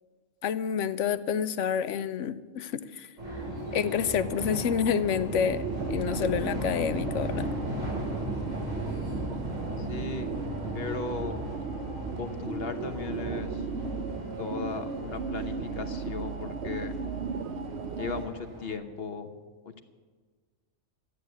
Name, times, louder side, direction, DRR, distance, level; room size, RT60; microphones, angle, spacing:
voice 1, 0.4-3.1 3.7-7.5, left 7 dB, 75° left, 14 dB, 1.0 m, -28 dB
sound 1, 3.2-18.7, equal, 85° right, 5.5 m, -37 dB
sound 2, 5.3-18.3, right 5 dB, 60° right, 1.0 m, -36 dB
voice 2, 9.8-10.3 10.7-11.5 12.2-13.6 14.4-16.9 17.9-19.3 19.6-19.8, left 5 dB, 50° left, 8 dB, 1.1 m, -37 dB
13.0 x 9.6 x 9.4 m, 1.5 s
omnidirectional pair, 1.3 m